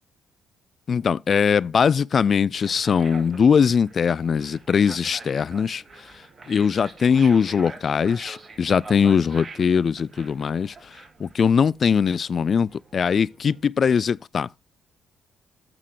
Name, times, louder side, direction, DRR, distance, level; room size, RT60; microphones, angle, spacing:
voice 1, 0.9-5.8 6.5-10.7 11.2-14.5, left 6 dB, 45° left, 0.3 m, -21 dB
sound 1, 2.6-13.7, right 3 dB, 30° right, 1.8 m, -45 dB
7.5 x 5.7 x 5.0 m
cardioid pair, 90°, 0 cm